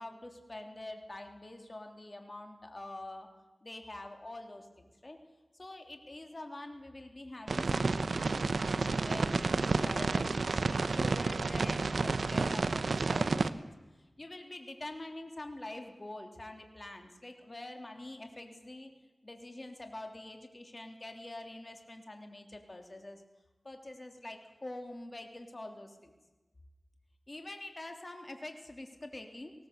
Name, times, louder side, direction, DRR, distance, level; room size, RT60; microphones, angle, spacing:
voice 1, 0.0-3.4 3.6-5.2 5.5-13.7 13.9-18.9 19.2-23.2 23.6-26.1 27.3-29.5, left 1 dB, 40° left, 4 dB, 3.2 m, -46 dB
sound 1, 7.5-13.5, right 3 dB, 80° right, 0.9 m, -30 dB
19.0 x 18.5 x 8.2 m, 1.2 s
cardioid pair, 45°, 0 cm